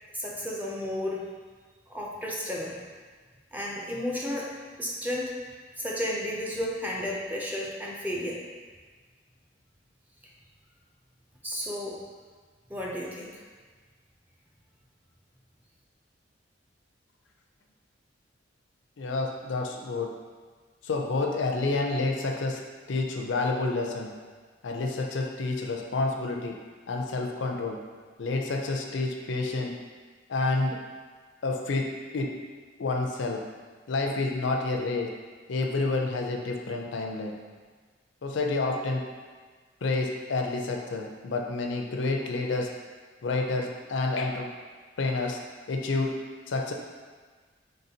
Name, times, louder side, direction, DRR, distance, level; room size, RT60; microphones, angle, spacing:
voice 1, 0.1-1.2 1.9-2.8 3.5-5.3 5.8-8.4 11.4-12.0 12.7-13.4, left 1 dB, 10° right, -3 dB, 0.5 m, -33 dB
voice 2, 19.0-20.1 20.8-22.6 22.9-24.1 24.6-26.6 26.9-27.8 28.2-29.8 30.3-30.8 31.4-32.3 32.8-33.4 33.9-35.1 35.5-37.4 38.2-39.0 39.8-42.7 43.2-44.5 45.0-45.4 45.7-46.1 46.5-46.7, left 3 dB, 75° left, 2 dB, 0.5 m, -29 dB
4.0 x 3.8 x 2.8 m, 1.5 s
head